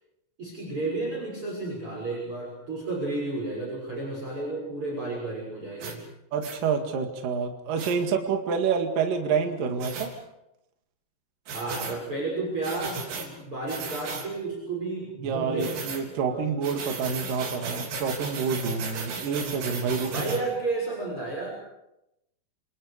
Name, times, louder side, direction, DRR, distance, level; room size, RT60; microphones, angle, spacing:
voice 1, 0.4-6.0 11.5-15.8 16.1-16.4 20.0-21.5, right 3 dB, 30° right, -2 dB, 7.1 m, -32 dB
sound 1, 5.8-6.0 6.4-6.6 7.8-7.9 9.8-10.1 11.5-12.0 12.6-13.3 13.7-14.3 15.6-16.0 16.6-20.4, right 4 dB, 80° right, 6.0 m, -35 dB
voice 2, 6.3-10.1 15.2-20.1, right 6 dB, 55° right, 4 dB, 3.2 m, -28 dB
28.0 x 27.5 x 5.0 m, 0.86 s
omnidirectional pair, 5.3 m